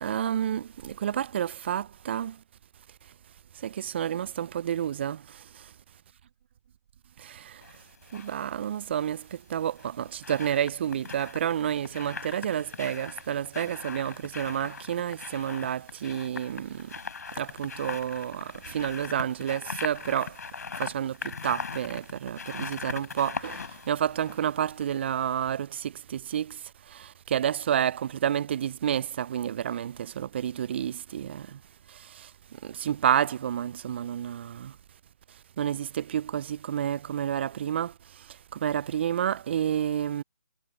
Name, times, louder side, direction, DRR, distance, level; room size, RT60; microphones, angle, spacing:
voice 1, 0.0-2.3 3.6-5.2 7.2-7.4 8.1-9.2 9.5-16.9 17.4-20.3 20.8-26.6 27.0-31.6 32.6-34.7 35.6-37.9 38.5-40.2, right 9 dB, 35° right, 0.4 m, -30 dB
sound 1, 7.6-8.3 9.6-25.1 25.4-25.5, left 5 dB, 60° left, 4.0 m, -40 dB
figure-of-eight pair, 150°, 10 cm